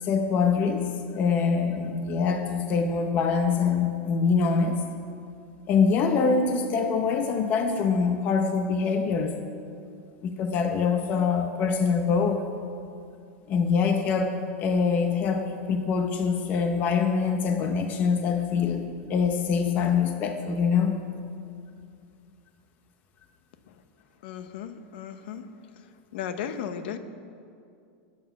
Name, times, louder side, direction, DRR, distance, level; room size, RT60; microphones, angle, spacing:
voice 1, 0.0-4.8 5.7-9.3 10.2-12.4 13.5-21.0, left 5 dB, 25° left, 6 dB, 0.7 m, -24 dB
voice 2, 24.2-25.5 26.1-27.0, left 8 dB, 55° left, 10 dB, 0.9 m, -35 dB
19.0 x 9.3 x 5.8 m, 2.5 s
supercardioid pair, 170°, 7 cm